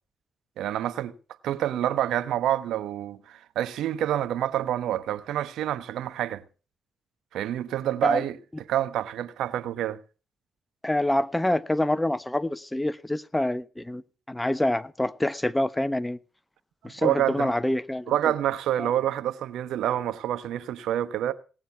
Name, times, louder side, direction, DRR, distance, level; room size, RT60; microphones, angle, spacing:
voice 1, 0.6-1.1 1.4-6.4 7.3-8.4 8.7-10.0 16.8-17.5 18.1-21.3, right 12 dB, 75° right, 1.1 m, -27 dB
voice 2, 10.8-16.2 16.8-18.3 18.8-18.9, left 1 dB, 10° left, 1.0 m, -26 dB
18.0 x 9.1 x 5.8 m
hypercardioid pair, 50°, 0 cm